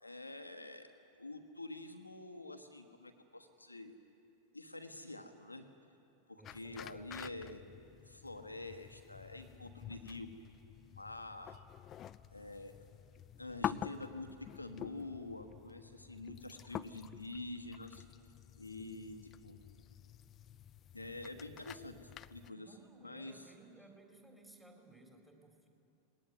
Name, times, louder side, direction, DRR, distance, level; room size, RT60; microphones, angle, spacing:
voice 1, 0.0-0.9 1.2-4.0 4.5-5.7 6.3-7.6 8.0-10.3 10.8-11.7 12.3-12.7 13.4-18.0 18.6-19.6 20.9-22.7 23.0-23.5, left 2 dB, 85° left, 7 dB, 1.3 m, -47 dB
sound 1, 6.4-22.5, left 10 dB, 30° left, 0.5 m, -48 dB
voice 2, 6.4-7.3 22.5-25.7, right 2 dB, 10° right, 2 dB, 4.0 m, -60 dB
20.5 x 18.5 x 9.6 m, 2.6 s
figure-of-eight pair, 90°, 0 cm